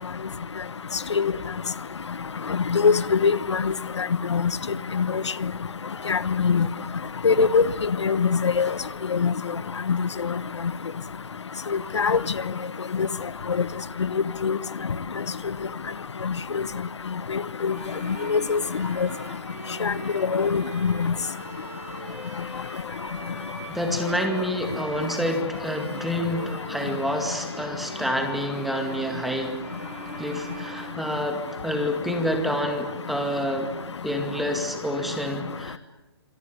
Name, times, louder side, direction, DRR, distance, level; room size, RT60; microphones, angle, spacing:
voice 1, 2.7-3.6 4.3-4.4 6.1-6.7 7.2-7.6 8.0-8.7 9.2-9.3 11.9-12.2 14.4-14.6 17.6-17.7 18.3-18.6 19.8-19.9 20.3-20.9, left 5 dB, 85° left, 16 dB, 1.2 m, -21 dB
Bowed string instrument, 17.7-31.8, right 4 dB, 30° right, 5.1 m, -43 dB
voice 2, 23.7-29.6 30.2-33.7 34.0-35.8, equal, ahead, 4 dB, 2.1 m, -28 dB
25.5 x 18.5 x 10.0 m, 1.1 s
hypercardioid pair, 165°, 14 cm